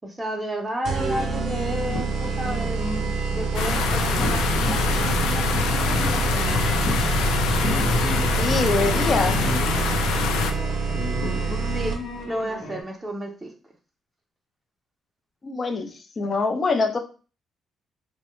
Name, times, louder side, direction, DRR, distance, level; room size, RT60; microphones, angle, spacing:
voice 1, 0.0-2.8 3.3-6.6 11.6-11.9 12.3-13.5, right 1 dB, 15° right, 1 dB, 0.5 m, -32 dB
sound 1, 0.9-12.2, right 4 dB, 60° right, 0.7 m, -26 dB
sound 2, 1.9-12.8, left 1 dB, 70° left, 0.8 m, -34 dB
sound 3, 3.5-10.5, left 6 dB, 90° left, 0.4 m, -25 dB
voice 2, 8.4-9.4 15.4-17.0, left 3 dB, 40° left, 5 dB, 0.6 m, -24 dB
3.0 x 2.2 x 3.0 m, 0.36 s
cardioid pair, 90°, 0 cm